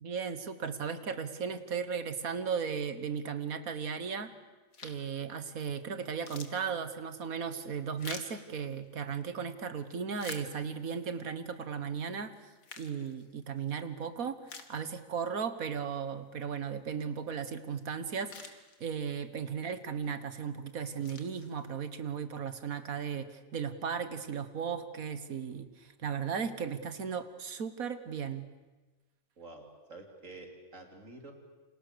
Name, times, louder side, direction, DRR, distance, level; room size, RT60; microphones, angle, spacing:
voice 1, 0.0-4.3 4.8-12.3 12.8-28.5, right 6 dB, 90° right, 11 dB, 1.9 m, -36 dB
sound 1, 4.7-5.2 5.7-5.8 6.0-9.2 9.8-11.0 11.5-11.6 12.3-13.7 14.1-14.2 14.5-15.3 15.7-15.8 17.7-17.8 18.1-19.2 19.8-20.1 20.7-21.9, left 4 dB, 85° left, 2.3 m, -48 dB
voice 2, 29.4-31.3, right 2 dB, 65° right, 3 dB, 3.8 m, -49 dB
28.5 x 27.0 x 6.9 m, 1.2 s
omnidirectional pair, 1.4 m